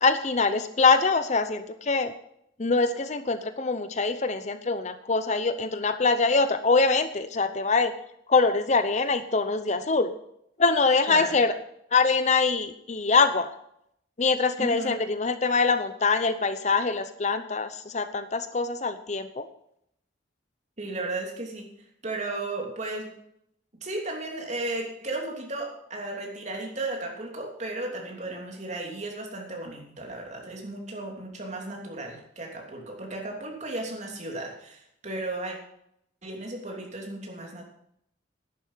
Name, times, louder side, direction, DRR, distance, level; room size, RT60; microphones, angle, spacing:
voice 1, 0.0-2.1 2.6-7.9 8.3-10.1 10.6-11.5 11.9-13.5 14.2-19.5, left 4 dB, 40° left, 10 dB, 0.7 m, -24 dB
voice 2, 14.6-15.0 20.8-21.7 22.0-23.1 23.8-35.6 36.2-37.7, right 2 dB, 40° right, 1 dB, 3.0 m, -35 dB
11.5 x 10.5 x 5.7 m, 0.74 s
head